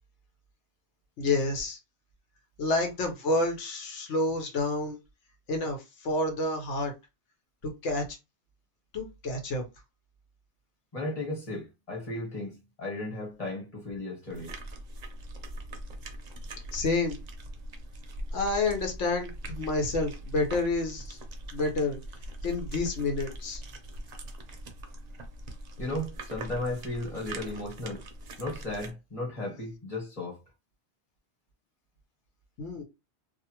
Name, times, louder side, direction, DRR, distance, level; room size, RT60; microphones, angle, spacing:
voice 1, 1.2-1.8 2.6-5.0 5.5-6.9 7.6-8.0 8.9-9.6 16.7-17.2 18.3-21.2 21.5-22.0 22.4-23.6 32.6-32.8, left 2 dB, 90° left, 1.2 m, -29 dB
voice 2, 10.9-14.5 25.8-28.0 28.4-30.4, left 1 dB, 30° left, 1.3 m, -35 dB
sound 1, 14.3-28.9, right 1 dB, 50° right, 0.5 m, -42 dB
2.6 x 2.5 x 2.8 m
omnidirectional pair, 1.2 m